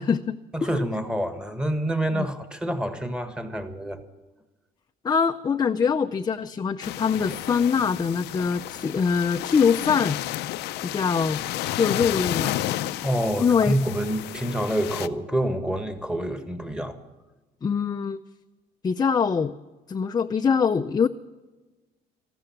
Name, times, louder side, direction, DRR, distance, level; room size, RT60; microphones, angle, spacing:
voice 1, 0.0-0.7 2.1-2.3 5.0-10.2 10.8-11.4 11.7-12.5 13.4-13.8 17.6-18.2 18.8-19.5 19.9-21.1, left 6 dB, 25° left, 6 dB, 0.5 m, -23 dB
voice 2, 0.5-4.0 13.0-17.0, right 1 dB, 5° right, 9 dB, 1.6 m, -27 dB
sound 1, 6.8-15.1, left 14 dB, 85° left, 0.6 m, -32 dB
14.0 x 13.0 x 7.2 m, 1.2 s
cardioid pair, 110°, 17 cm